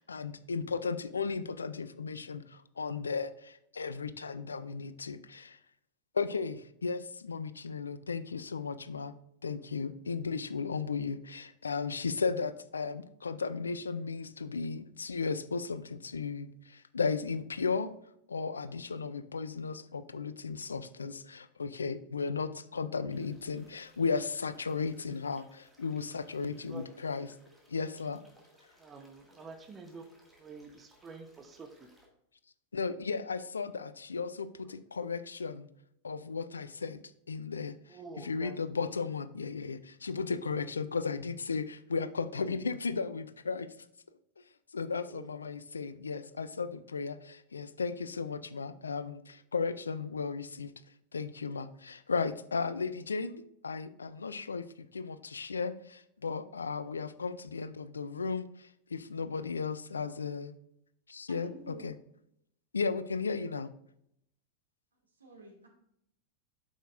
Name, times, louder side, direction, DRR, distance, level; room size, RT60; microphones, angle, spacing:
voice 1, 0.0-5.6 6.1-9.1 9.4-17.9 18.3-27.3 27.7-28.2 32.7-35.7 36.0-37.0 37.3-43.7 44.7-50.7 51.1-60.5 61.1-61.9 62.7-63.7, left 5 dB, 75° left, 0.4 m, -35 dB
sound 1, 23.1-32.1, equal, ahead, 2.0 m, -64 dB
voice 2, 26.6-27.0 28.8-30.1 30.4-31.9 37.9-38.6 45.0-45.3, right 4 dB, 20° right, 0.9 m, -48 dB
voice 3, 61.3-61.9 65.2-65.7, right 3 dB, 75° right, 1.9 m, -48 dB
8.9 x 6.4 x 2.5 m
figure-of-eight pair, 90°, 0 cm